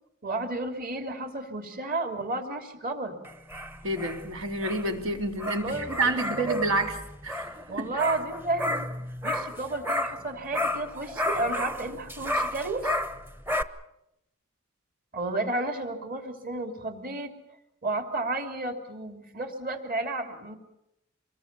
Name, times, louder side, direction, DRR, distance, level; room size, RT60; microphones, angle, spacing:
voice 1, 0.2-3.2 5.6-6.6 7.7-8.9 9.2-12.9 15.1-17.3 17.8-20.6, right 2 dB, 40° right, 6 dB, 3.2 m, -32 dB
sound 1, 3.2-10.3 10.5-13.6, left 1 dB, 10° right, 0.9 m, -32 dB
voice 2, 3.8-6.9 7.2-7.9, right 2 dB, 80° right, 3 dB, 3.7 m, -29 dB
26.0 x 22.0 x 7.0 m, 0.84 s
head